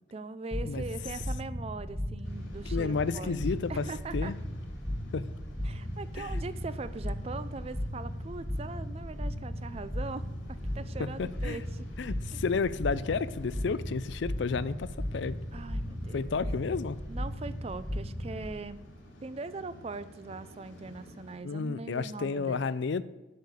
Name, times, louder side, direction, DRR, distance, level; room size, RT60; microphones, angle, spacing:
voice 1, 0.1-3.4 3.7-4.3 5.6-11.9 12.3-12.4 15.5-16.3 17.1-18.8 19.2-22.6, right 3 dB, 30° right, 14 dB, 0.4 m, -41 dB
sound 1, 0.5-18.6, equal, 5° right, 1.2 m, -36 dB
Waves surf, 2.2-21.4, equal, 90° left, 2.8 m, -53 dB
voice 2, 2.7-3.8 4.1-4.4 5.1-5.2 6.2-6.4 11.0-11.6 12.0-15.4 16.1-17.0 21.4-23.0, left 5 dB, 65° left, 16 dB, 0.4 m, -31 dB
8.4 x 6.5 x 8.2 m, 1.1 s
head